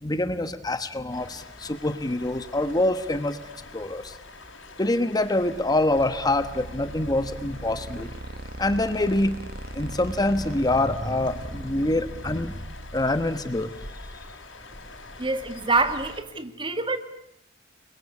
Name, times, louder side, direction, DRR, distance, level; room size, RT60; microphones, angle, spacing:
voice 1, 0.0-3.4 3.7-4.2 4.8-8.1 8.6-9.4 9.7-12.6 12.9-13.7, left 1 dB, 20° left, 11 dB, 1.2 m, -25 dB
sound 1, 1.1-16.2, left 3 dB, 70° left, 5.5 m, -45 dB
sound 2, 5.3-14.2, right 1 dB, 55° right, 1.7 m, -40 dB
voice 2, 15.2-17.0, right 3 dB, 25° right, 9 dB, 2.0 m, -26 dB
29.0 x 23.0 x 8.5 m, 0.74 s
head